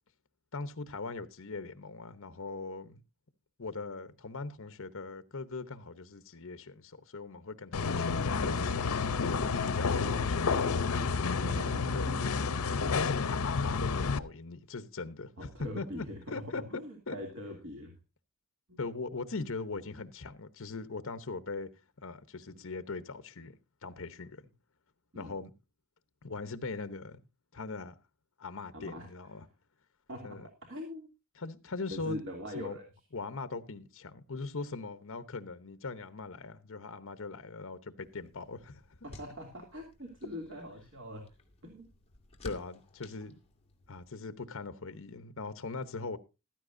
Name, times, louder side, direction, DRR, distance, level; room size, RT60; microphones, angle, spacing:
voice 1, 0.5-3.0 3.6-9.0 9.3-10.7 11.9-12.1 12.9-16.8 17.1-17.2 18.8-21.7 22.0-23.6 23.8-24.5 25.1-25.5 26.2-27.2 27.5-27.9 28.4-29.4 30.2-30.5 31.4-32.3 32.5-32.8 33.1-39.1 42.4-43.4 43.9-46.2, left 3 dB, 60° left, 0.9 m, -40 dB
sound 1, 7.7-14.2, left 4 dB, 85° left, 0.7 m, -30 dB
voice 2, 11.4-12.3 15.4-16.2 16.7-18.0 18.7-18.8 25.1-25.3 28.7-29.1 30.1-31.1 31.9-32.8 39.0-41.2 41.6-41.9, left 1 dB, 60° right, 2.7 m, -42 dB
sound 2, 38.0-44.1, left 2 dB, 30° left, 2.1 m, -53 dB
15.0 x 13.0 x 2.6 m
head